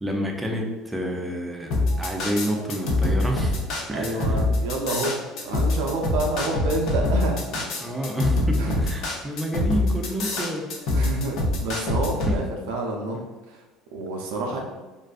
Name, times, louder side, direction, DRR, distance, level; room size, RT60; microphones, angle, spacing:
voice 1, 0.0-3.6 3.9-4.4 7.8-10.7 12.3-12.4 14.5-14.6, equal, 10° right, 1 dB, 0.4 m, -29 dB
sound 1, 1.7-12.4, left 2 dB, 65° left, 0.5 m, -24 dB
voice 2, 3.9-7.7 8.6-8.7 10.9-13.2 13.5-13.6 13.9-14.6, right 2 dB, 90° right, 0 dB, 0.3 m, -28 dB
2.5 x 2.2 x 2.4 m, 1.2 s
cardioid pair, 115°, 0 cm